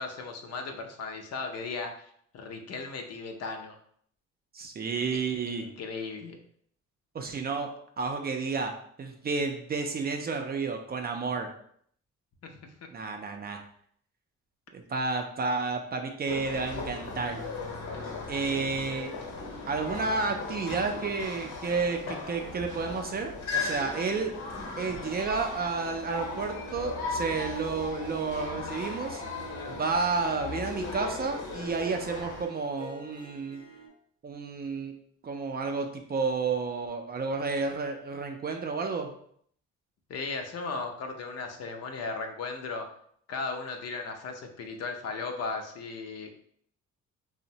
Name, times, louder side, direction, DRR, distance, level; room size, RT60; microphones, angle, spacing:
voice 1, 0.0-3.8 5.1-5.2 5.5-6.4 12.5-12.6 40.1-42.9 43.3-46.4, left 4 dB, 55° left, 4 dB, 0.5 m, -36 dB
voice 2, 4.5-5.7 7.1-11.5 12.9-13.6 14.7-17.4 18.3-19.1 19.7-24.4 24.8-29.2 29.7-33.6 34.2-34.9 35.2-39.1, right 4 dB, 35° right, 4 dB, 0.4 m, -31 dB
sound 1, 16.2-32.4, left 4 dB, 75° left, 0.9 m, -37 dB
Harp, 26.0-33.9, right 5 dB, 15° right, 0.7 m, -48 dB
2.9 x 2.1 x 2.7 m, 0.65 s
cardioid pair, 90°, 30 cm